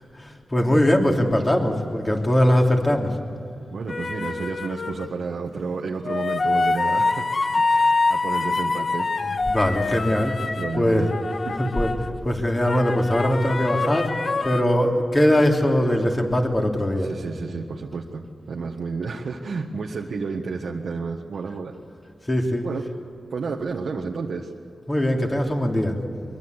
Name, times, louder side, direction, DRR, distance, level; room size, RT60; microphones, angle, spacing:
voice 1, 0.2-3.2 9.5-10.3 10.7-11.0 11.6-11.9 12.2-17.1 22.3-22.7 24.9-26.0, left 1 dB, 25° left, 1 dB, 3.3 m, -21 dB
voice 2, 3.7-7.3 7.5-9.1 10.4-11.1 11.4-11.7 17.0-21.7 22.6-22.9 23.3-24.5, right 4 dB, 80° right, -1 dB, 1.5 m, -31 dB
sound 1, 3.9-5.1 6.0-12.2 12.6-14.6, left 3 dB, 45° left, 0.8 m, -25 dB
24.0 x 23.0 x 8.2 m, 2.5 s
wide cardioid pair, 100°, 0 cm